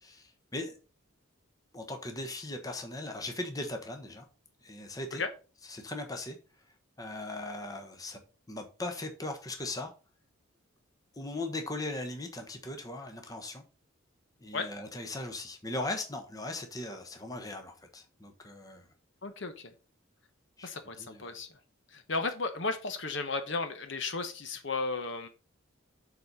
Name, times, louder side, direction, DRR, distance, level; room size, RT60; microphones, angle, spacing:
voice 1, 0.0-0.8 1.7-4.2 4.6-5.2 5.6-6.4 7.0-8.2 8.5-9.9 11.2-13.6 14.4-18.9 20.6-20.7 21.0-21.3, left 2 dB, 15° left, 1.1 m, -39 dB
voice 2, 19.2-19.7 20.6-21.5 21.9-25.3, left 3 dB, 60° left, 1.0 m, -34 dB
7.5 x 4.1 x 5.4 m
head